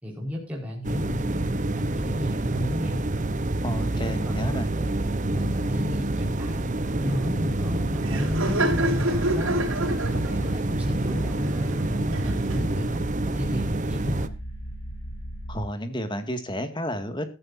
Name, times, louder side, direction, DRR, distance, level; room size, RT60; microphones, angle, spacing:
voice 1, 0.0-3.0 3.9-4.9 5.3-6.6 7.0-9.7 10.1-14.3, left 1 dB, 5° right, -3 dB, 4.9 m, -33 dB
sound 1, 0.8-14.3, right 2 dB, 35° right, 1.0 m, -27 dB
voice 2, 3.6-4.7 15.5-17.3, equal, 20° left, 8 dB, 2.1 m, -31 dB
Laughter, 6.6-12.9, right 1 dB, 70° right, 6.4 m, -31 dB
sound 2, 9.9-15.6, right 1 dB, 85° left, 3.5 m, -39 dB
15.0 x 14.5 x 2.7 m, 0.31 s
head